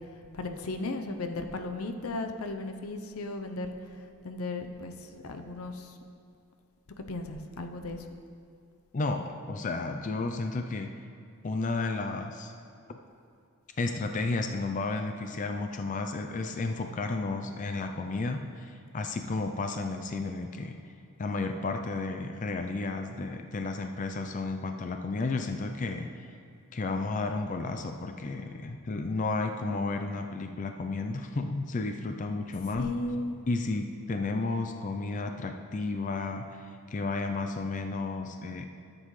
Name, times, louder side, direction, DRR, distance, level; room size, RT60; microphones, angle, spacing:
voice 1, 0.3-6.0 7.0-8.1 32.8-33.4, left 2 dB, 90° left, 6 dB, 0.7 m, -36 dB
voice 2, 8.9-10.9 11.4-12.5 12.9-13.0 13.8-20.8 21.2-26.3 26.7-32.9 33.5-38.7, left 3 dB, 35° left, 5 dB, 0.4 m, -32 dB
13.5 x 7.7 x 3.2 m, 2.5 s
head